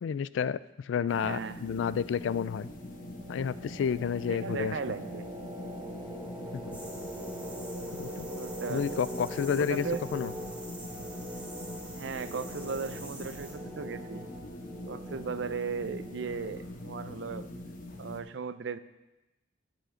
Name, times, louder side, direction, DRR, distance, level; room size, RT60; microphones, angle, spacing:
voice 1, 0.0-2.7 3.3-4.9 6.5-6.8 7.9-8.3 8.7-9.9 10.1-10.3, left 7 dB, 75° left, 17 dB, 0.3 m, -31 dB
sound 1, 1.1-18.2, left 1 dB, 45° left, 1.1 m, -43 dB
voice 2, 1.1-1.6 4.3-5.3 8.3-10.0 11.9-14.3 14.9-17.4 18.0-18.8, right 5 dB, 65° right, 13 dB, 0.5 m, -37 dB
sound 2, 2.4-17.0, equal, 30° right, 2.0 m, -43 dB
sound 3, 6.7-13.5, right 1 dB, 10° right, 1.8 m, -47 dB
9.2 x 7.5 x 6.3 m, 1.0 s
head